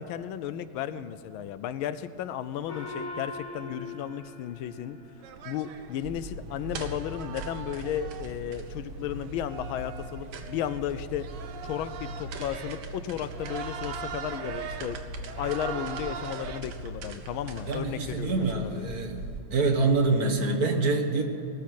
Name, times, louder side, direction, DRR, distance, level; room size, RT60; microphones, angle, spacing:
voice 1, 0.0-5.0 5.4-11.3 11.6-15.0 15.4-18.9, left 10 dB, 85° left, 14 dB, 1.4 m, -34 dB
Gong, 2.7-5.6, left 2 dB, 20° left, 2.4 m, -41 dB
sound 1, 5.2-16.6, right 7 dB, 65° right, 1.3 m, -41 dB
sound 2, 6.0-19.4, right 1 dB, 85° right, 1.9 m, -40 dB
voice 2, 17.7-19.2 19.5-21.2, right 3 dB, 50° right, 2 dB, 1.7 m, -25 dB
18.5 x 6.7 x 9.4 m, 2.7 s
omnidirectional pair, 2.2 m